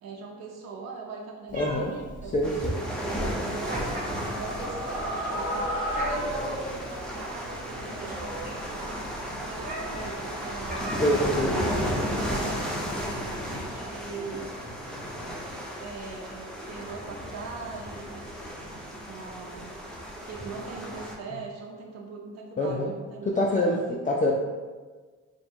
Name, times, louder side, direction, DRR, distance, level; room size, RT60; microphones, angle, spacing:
voice 1, 0.0-3.8 4.4-9.0 9.3-10.9 11.7-14.5 15.8-18.3 19.1-19.8 20.3-23.3 23.5-24.2, right 4 dB, 60° right, -1 dB, 0.6 m, -41 dB
voice 2, 1.5-1.9 2.3-2.8 11.0-11.6 22.6-22.9 23.4-24.3, left 1 dB, 25° left, -1 dB, 0.4 m, -25 dB
Meow, 1.5-13.1, right 1 dB, 30° right, 0.9 m, -40 dB
sound 1, 2.4-21.1, equal, ahead, 0.7 m, -34 dB
sound 2, 3.4-7.2, equal, 50° left, 1.1 m, -33 dB
3.8 x 2.2 x 4.4 m, 1.4 s
cardioid pair, 90°, 30 cm